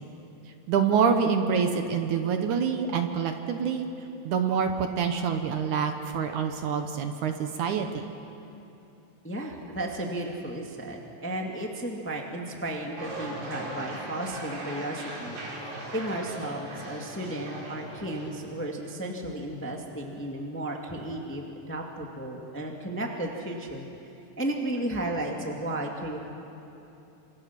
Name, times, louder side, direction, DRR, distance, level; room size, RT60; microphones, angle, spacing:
voice 1, 0.7-3.9 4.3-8.1, right 6 dB, 65° right, 6 dB, 2.3 m, -26 dB
voice 2, 9.2-15.4 15.9-23.9 24.4-26.2, right 1 dB, 5° left, 1 dB, 1.3 m, -34 dB
sound 1, 13.0-18.3, right 1 dB, 85° right, 6.2 m, -38 dB
29.5 x 27.0 x 6.0 m, 2.9 s
omnidirectional pair, 4.1 m